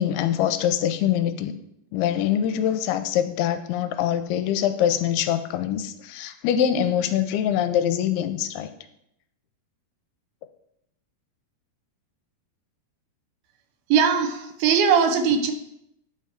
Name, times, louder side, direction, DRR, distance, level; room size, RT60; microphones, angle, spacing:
voice 1, 0.0-1.5 1.9-8.7, left 10 dB, 90° left, 10 dB, 2.6 m, -24 dB
voice 2, 13.9-15.5, right 6 dB, 75° right, 6 dB, 2.5 m, -20 dB
9.8 x 4.5 x 6.3 m, 0.79 s
omnidirectional pair, 4.5 m